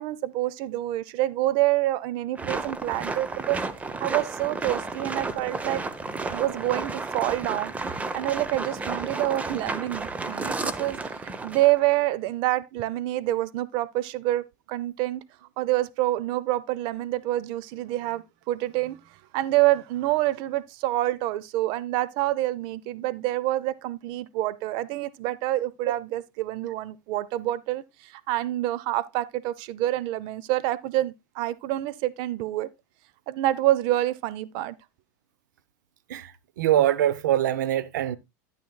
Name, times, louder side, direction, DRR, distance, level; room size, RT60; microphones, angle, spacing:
voice 1, 0.0-3.6 4.0-5.8 6.3-15.2 15.6-19.0 19.3-32.7 33.3-34.7, right 15 dB, 55° right, 0.6 m, -27 dB
sound 1, 2.3-12.0, right 3 dB, 15° right, 0.8 m, -32 dB
voice 2, 36.6-38.2, right 12 dB, 90° right, 0.7 m, -23 dB
10.0 x 9.4 x 2.3 m
supercardioid pair, 125°, 10 cm